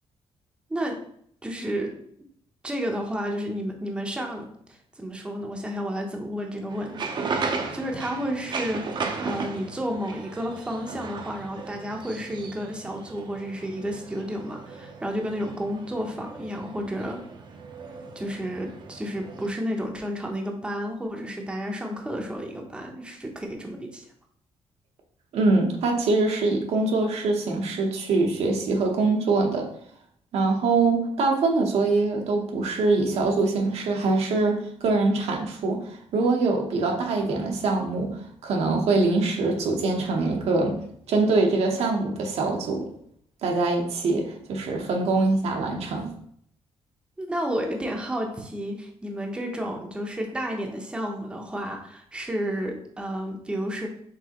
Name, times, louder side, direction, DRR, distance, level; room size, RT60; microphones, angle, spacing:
voice 1, 1.4-1.9 2.6-17.2 18.2-24.0 47.2-53.9, equal, 10° right, 2 dB, 0.6 m, -31 dB
sound 1, 6.7-19.5, right 4 dB, 45° right, 0.6 m, -36 dB
voice 2, 25.3-29.7 30.3-38.2 38.4-40.8 41.1-42.9 43.4-46.1, right 3 dB, 75° right, 2 dB, 0.8 m, -23 dB
4.9 x 3.3 x 2.9 m, 0.67 s
cardioid pair, 120°, 11 cm